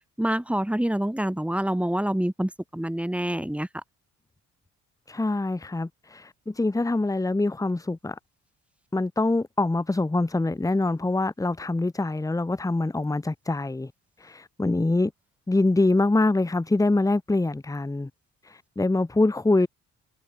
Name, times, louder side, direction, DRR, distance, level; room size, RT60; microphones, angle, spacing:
voice 1, 0.2-3.7, right 1 dB, 5° right, 3.5 m, -26 dB
voice 2, 5.1-8.2 8.9-13.9 14.2-15.1 15.5-18.1 18.4-19.7, left 2 dB, 10° left, 1.2 m, -24 dB
cardioid pair, 90°, 30 cm